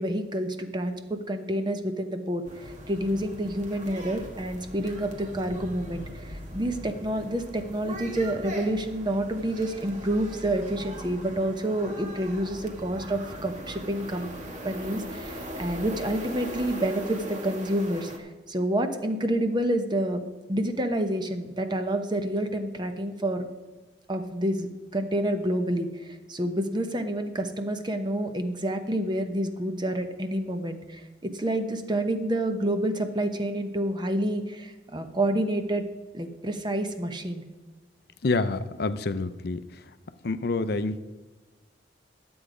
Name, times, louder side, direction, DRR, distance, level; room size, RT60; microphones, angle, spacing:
voice 1, 0.0-14.3 14.6-23.5 24.1-35.8 36.1-37.4, right 1 dB, 25° right, 7 dB, 0.9 m, -28 dB
sound 1, 2.4-18.2, right 1 dB, 45° right, 1.4 m, -40 dB
voice 2, 38.2-39.8 40.2-41.0, left 3 dB, 60° left, 11 dB, 0.5 m, -27 dB
12.0 x 7.9 x 5.0 m, 1.2 s
head